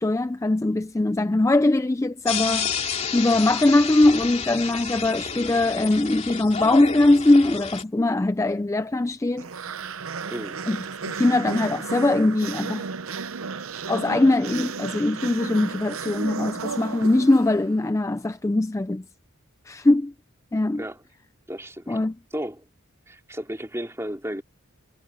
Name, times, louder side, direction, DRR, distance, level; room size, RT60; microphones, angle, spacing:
voice 1, 0.0-2.8 3.1-9.5 10.7-12.9 13.9-19.0 19.7-20.1 20.5-20.8 21.9-22.1, left 2 dB, 15° left, 0.3 m, -21 dB
sound 1, 2.3-7.8, left 6 dB, 30° left, 2.7 m, -30 dB
sound 2, 9.4-17.8, right 5 dB, 75° right, 0.8 m, -34 dB
voice 2, 10.3-10.6 20.8-21.0 21.5-22.0 22.3-22.7 23.1-24.4, equal, 10° right, 3.6 m, -33 dB
head